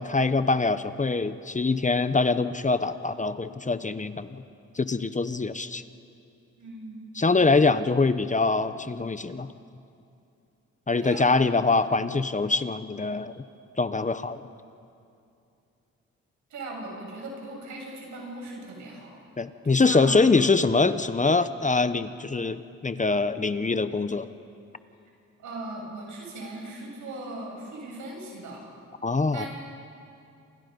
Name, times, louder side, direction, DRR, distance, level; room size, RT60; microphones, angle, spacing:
voice 1, 0.0-4.4 4.8-5.8 7.2-9.5 10.9-13.4 13.8-14.4 19.4-24.3 29.0-29.5, left 3 dB, 25° left, 12 dB, 1.0 m, -24 dB
voice 2, 6.6-7.1 11.0-11.5 16.5-19.2 19.6-20.2 25.4-28.6 29.3-29.5, right 2 dB, 85° right, -1 dB, 7.7 m, -39 dB
28.5 x 28.5 x 5.4 m, 2.6 s
cardioid pair, 65°, 29 cm